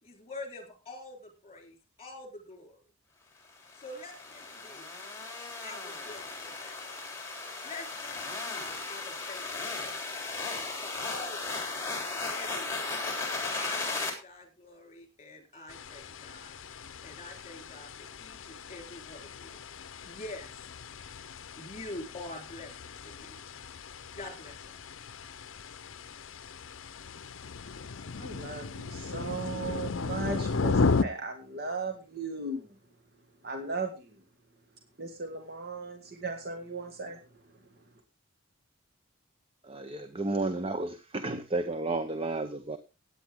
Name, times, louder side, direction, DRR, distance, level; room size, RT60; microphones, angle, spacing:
voice 1, 0.0-2.8 3.7-4.9 5.6-6.9 7.6-9.9 10.8-13.0 13.5-16.6 17.0-19.6 20.0-20.5 21.5-23.4 24.1-24.8, left 2 dB, 30° left, 3 dB, 3.9 m, -46 dB
sound 1, 3.7-14.1, left 3 dB, 15° left, 3.5 m, -36 dB
sound 2, 15.7-31.0, left 4 dB, 65° left, 0.7 m, -35 dB
voice 2, 28.2-32.8 33.4-34.2 35.0-37.6, right 3 dB, 45° right, 4 dB, 1.8 m, -37 dB
voice 3, 39.6-42.8, right 2 dB, 25° right, 9 dB, 0.8 m, -32 dB
16.0 x 9.7 x 3.6 m, 0.30 s
head